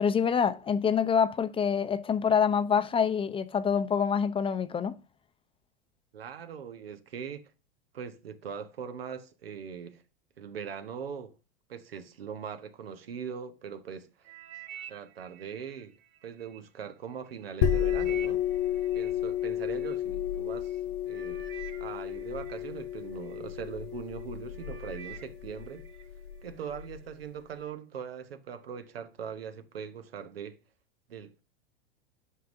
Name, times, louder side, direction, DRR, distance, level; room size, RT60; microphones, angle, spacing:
voice 1, 0.0-4.9, left 7 dB, 20° left, 0.6 m, -26 dB
voice 2, 6.1-7.5 7.9-10.0 10.4-11.4 11.7-14.3 14.9-16.0 16.2-18.4 18.9-21.4 21.8-25.9 26.4-30.6 31.1-31.4, right 7 dB, 85° right, 1.2 m, -41 dB
sound 1, 14.2-16.6 17.1-20.0 20.7-20.8 21.1-23.4 24.0-24.2 24.5-26.1 26.4-26.9 27.5-27.6, right 9 dB, 40° right, 2.1 m, -48 dB
sound 2, 17.6-27.0, left 10 dB, 60° left, 1.1 m, -32 dB
11.5 x 5.6 x 2.6 m
hypercardioid pair, 105°, 29 cm